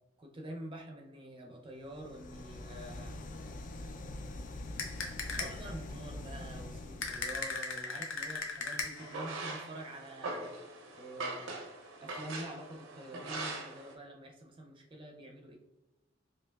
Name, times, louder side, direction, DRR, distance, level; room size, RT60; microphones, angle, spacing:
voice 1, 0.2-3.1 5.4-10.5 10.9-11.6 12.0-15.6, right 1 dB, 25° right, 1 dB, 0.5 m, -46 dB
sound 1, 1.8-7.6, left 2 dB, 40° left, 0.3 m, -44 dB
sound 2, 4.8-5.7 7.0-9.2, left 4 dB, 80° left, 0.7 m, -38 dB
sound 3, 9.0-13.9, right 2 dB, 75° right, 0.6 m, -42 dB
5.1 x 2.8 x 2.3 m, 0.99 s
head